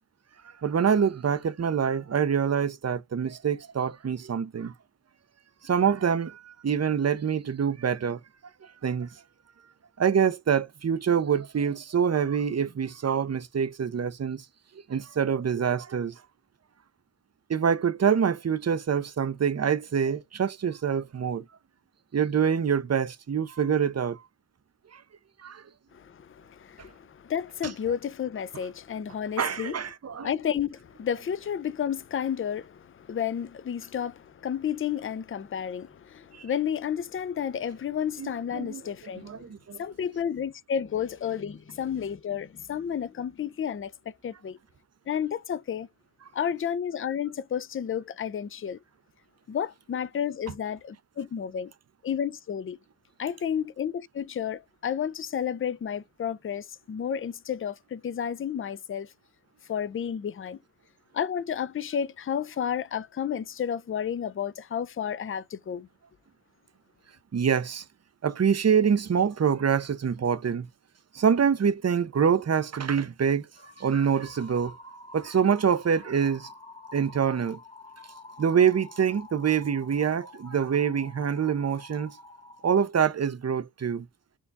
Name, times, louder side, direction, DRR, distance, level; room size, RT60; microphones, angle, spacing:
voice 1, 0.6-4.7 5.6-8.2 8.6-9.1 10.0-14.5 14.9-16.1 17.5-21.4 22.1-24.2 24.9-25.0 25.4-25.6 27.6-27.7 29.4-30.3 36.3-36.5 38.2-38.8 39.2-39.8 67.3-67.8 68.2-70.7 71.1-73.5 73.8-74.7 75.1-76.5 76.9-77.6 78.4-82.1 82.6-84.1, right 7 dB, 40° right, 0.5 m, -25 dB
voice 2, 25.9-29.8 30.2-39.5 39.8-43.9 44.2-44.6 45.1-45.9 46.3-48.8 49.5-51.7 52.0-52.8 53.2-59.1 59.7-60.6 61.1-65.9, left 8 dB, 35° left, 0.4 m, -31 dB
sound 1, 73.6-82.9, left 2 dB, 15° left, 0.8 m, -48 dB
4.6 x 2.3 x 4.0 m
cardioid pair, 50°, 41 cm